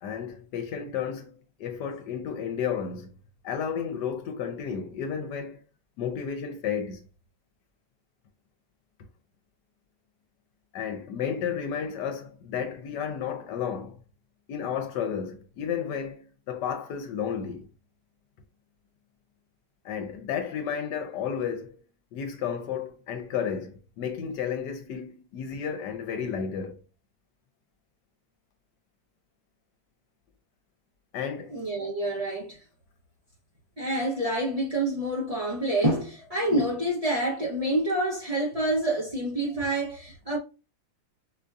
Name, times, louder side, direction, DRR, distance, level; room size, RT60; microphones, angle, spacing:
voice 1, 0.0-3.1 3.4-5.6 6.0-7.1 10.7-14.0 14.5-17.7 19.8-21.7 22.1-26.8 31.1-31.6, left 7 dB, 75° left, 1.2 m, -32 dB
voice 2, 31.5-32.6 33.8-40.4, right 1 dB, 50° right, 0.4 m, -27 dB
5.0 x 2.6 x 2.3 m
omnidirectional pair, 2.0 m